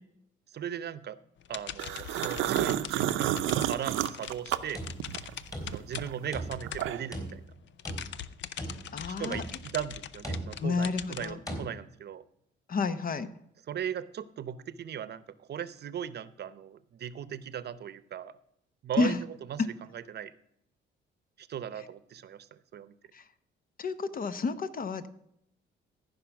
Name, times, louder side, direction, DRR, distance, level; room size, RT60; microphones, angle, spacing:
voice 1, 0.5-1.2 1.5-4.8 5.7-7.4 9.1-12.2 13.7-18.3 18.8-20.3 21.4-22.9, right 9 dB, 55° right, 15 dB, 0.8 m, -38 dB
sound 1, 1.4-7.3 7.7-11.3, left 10 dB, 70° left, 0.6 m, -42 dB
sound 2, 1.8-5.3 5.7-7.2, right 12 dB, 90° right, 0.7 m, -30 dB
sound 3, 4.6-6.0 6.3-6.8 7.1-8.2 8.6-9.0 9.3-9.8 10.2-10.8 11.5-11.7, equal, 15° left, 3.5 m, -39 dB
voice 2, 8.9-9.4 10.6-11.4 12.7-13.3 19.0-19.2 23.8-25.1, left 4 dB, 45° left, 13 dB, 1.0 m, -30 dB
14.5 x 5.5 x 5.9 m, 0.74 s
cardioid pair, 90°, 20 cm